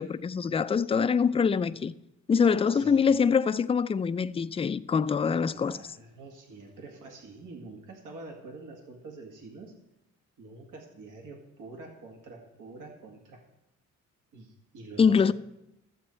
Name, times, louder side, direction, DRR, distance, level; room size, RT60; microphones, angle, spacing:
voice 1, 0.0-1.9 2.3-5.8 15.0-15.3, left 6 dB, 20° left, 0.3 m, -24 dB
voice 2, 2.7-3.1 5.4-9.7 10.4-13.4 14.3-15.3, right 3 dB, 85° right, 2.1 m, -46 dB
12.5 x 7.9 x 4.4 m
cardioid pair, 100°, 31 cm